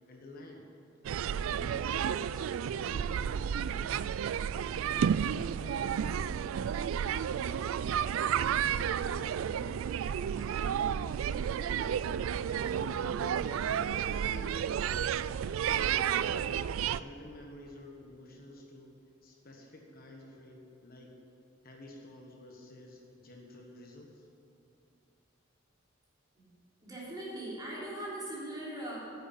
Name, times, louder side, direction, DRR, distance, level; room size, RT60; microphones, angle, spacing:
voice 1, 0.1-0.7 1.4-4.1 4.9-7.8 8.1-9.9 10.2-11.7 12.5-15.0 15.6-18.9 19.2-21.1 21.6-24.3, left 1 dB, 50° left, 1 dB, 1.3 m, -50 dB
sound 1, 1.0-17.0, right 8 dB, 85° right, 0.3 m, -31 dB
voice 2, 26.8-29.0, right 1 dB, 20° right, -7 dB, 3.7 m, -40 dB
9.8 x 8.0 x 9.3 m, 2.6 s
head